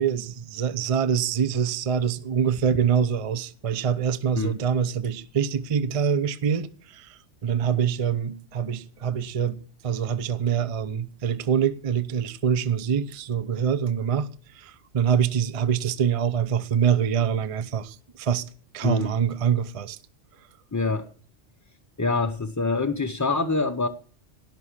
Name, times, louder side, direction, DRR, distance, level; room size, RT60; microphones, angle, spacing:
voice 1, 0.0-9.6 9.8-14.3 14.6-18.4 18.7-20.0, right 8 dB, 35° right, 0.6 m, -25 dB
voice 2, 18.8-19.2 20.7-21.1 22.0-23.9, left 3 dB, 20° left, 0.5 m, -25 dB
17.5 x 6.1 x 7.2 m
omnidirectional pair, 1.3 m